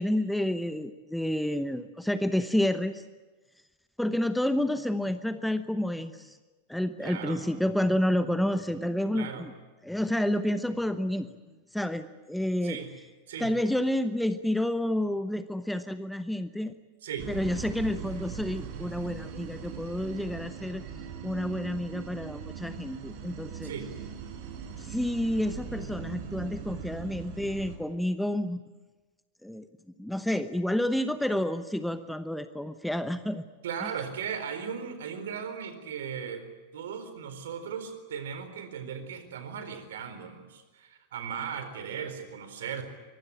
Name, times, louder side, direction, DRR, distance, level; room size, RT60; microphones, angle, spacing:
voice 1, 0.0-3.0 4.0-6.4 6.7-9.5 9.8-11.3 11.7-12.8 13.4-16.7 17.3-20.8 21.2-23.7 24.8-28.6 29.4-29.7 30.0-33.4 33.8-33.9, left 1 dB, ahead, 11 dB, 1.0 m, -29 dB
voice 2, 7.0-7.4 9.1-9.4 12.6-12.9 13.3-13.5 17.0-17.3 23.6-23.9 33.6-36.5 36.7-42.8, right 7 dB, 60° right, 9 dB, 4.2 m, -37 dB
sound 1, 17.2-27.8, right 7 dB, 45° right, 4.6 m, -40 dB
24.0 x 23.0 x 8.8 m, 1.2 s
figure-of-eight pair, 90°, 0 cm